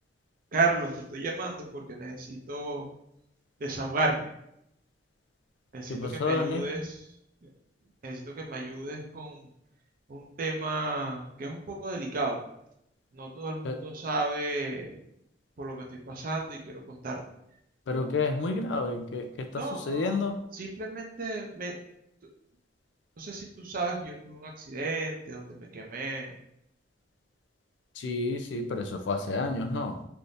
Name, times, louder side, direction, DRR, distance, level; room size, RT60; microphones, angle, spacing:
voice 1, 0.5-2.9 3.6-4.3 5.7-7.0 7.4-7.5 8.0-9.5 10.1-12.4 13.1-15.0 15.6-17.2 19.6-20.2 20.5-21.8 23.2-26.3, right 2 dB, 50° right, 0 dB, 0.5 m, -33 dB
voice 2, 5.9-6.7 13.6-13.8 17.9-20.4 27.9-30.0, left 3 dB, 80° left, 6 dB, 0.4 m, -30 dB
3.4 x 2.6 x 2.6 m, 0.77 s
head